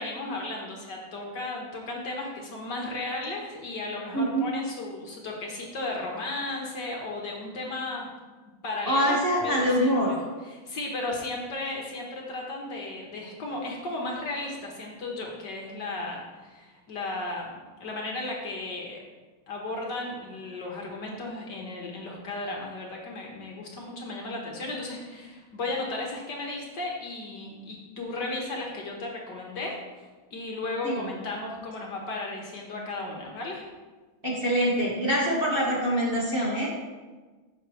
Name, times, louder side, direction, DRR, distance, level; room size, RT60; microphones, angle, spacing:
voice 1, 0.0-8.1 8.4-9.2 9.4-9.9 10.4-17.5 17.8-19.0 19.5-33.6, left 2 dB, 55° left, -1 dB, 1.8 m, -35 dB
voice 2, 4.1-4.5 8.9-10.1 30.8-31.1 34.2-36.7, equal, 25° right, -5 dB, 1.6 m, -24 dB
14.5 x 6.3 x 3.2 m, 1.3 s
omnidirectional pair, 2.4 m